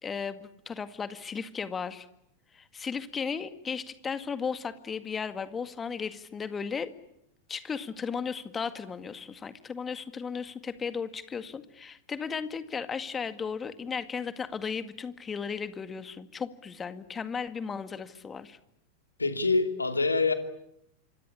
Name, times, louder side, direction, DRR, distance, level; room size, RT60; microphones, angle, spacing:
voice 1, 0.0-2.1 2.5-6.9 7.5-18.6, left 6 dB, 20° left, 1.9 m, -35 dB
voice 2, 19.2-20.3, left 3 dB, 80° left, 2.7 m, -25 dB
26.5 x 26.0 x 8.6 m
figure-of-eight pair, 90°, 0 cm